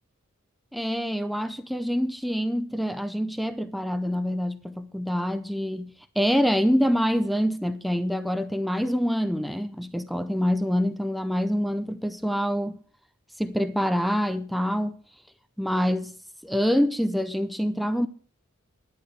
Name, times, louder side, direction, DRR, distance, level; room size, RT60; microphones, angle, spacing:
voice 1, 0.7-12.8 13.4-15.0 15.6-16.2 16.4-18.1, equal, ahead, 0.5 m, -26 dB
11.5 x 10.0 x 4.7 m
head